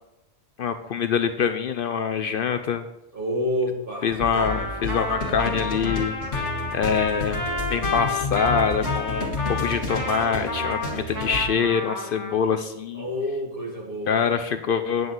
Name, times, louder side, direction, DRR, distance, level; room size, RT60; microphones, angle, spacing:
voice 1, 0.6-2.8 4.0-6.1 6.7-7.4 7.7-13.0 14.1-15.1, left 6 dB, 60° left, 9 dB, 0.7 m, -25 dB
voice 2, 3.1-4.2 12.9-14.2, left 1 dB, 50° right, -1 dB, 2.2 m, -28 dB
sound 1, 4.1-11.4, left 2 dB, 85° left, 1.7 m, -31 dB
Trumpet, 4.4-12.4, left 2 dB, 15° left, 1.6 m, -30 dB
9.5 x 7.6 x 4.0 m, 0.91 s
omnidirectional pair, 1.1 m